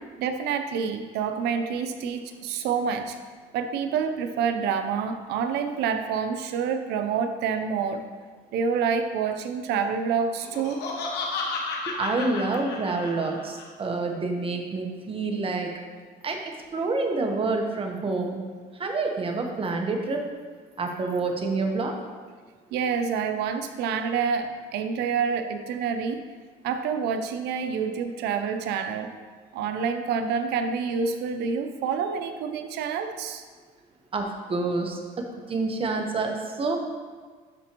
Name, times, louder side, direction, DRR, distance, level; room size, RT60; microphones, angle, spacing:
voice 1, 0.2-3.2 3.5-8.0 8.5-10.8 22.7-26.2 26.6-29.1 29.5-33.4, right 6 dB, 85° right, 7 dB, 0.6 m, -27 dB
Laughter, 10.4-13.6, left 3 dB, 85° left, 1.1 m, -32 dB
voice 2, 11.9-15.7 16.2-16.4 16.7-18.4 18.7-20.3 20.8-21.9 34.1-36.8, right 3 dB, 35° right, 2 dB, 1.0 m, -28 dB
12.0 x 4.3 x 3.0 m, 1.5 s
cardioid pair, 110°, 17 cm